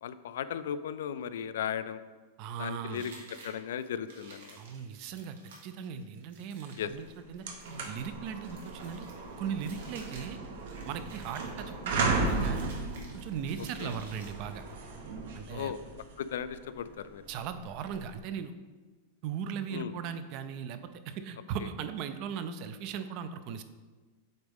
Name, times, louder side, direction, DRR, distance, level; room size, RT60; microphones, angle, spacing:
voice 1, 0.0-2.0 2.6-3.1 3.4-4.6 6.8-6.9 13.8-14.0 15.5-15.8 16.2-17.2 19.7-19.9 21.6-21.7, left 8 dB, 80° left, 13 dB, 0.3 m, -36 dB
voice 2, 2.4-3.0 4.6-5.4 5.6-7.5 7.9-9.1 9.4-10.4 10.8-12.7 13.1-14.6 15.3-15.7 17.3-18.5 19.2-23.6, right 7 dB, 35° right, 10 dB, 0.4 m, -38 dB
sound 1, 2.9-14.8, right 3 dB, 85° right, 1.6 m, -53 dB
sound 2, 6.9-7.0 7.3-18.2, right 3 dB, 65° right, 0.9 m, -36 dB
7.9 x 4.0 x 3.6 m, 1.4 s
supercardioid pair, 170°, 0 cm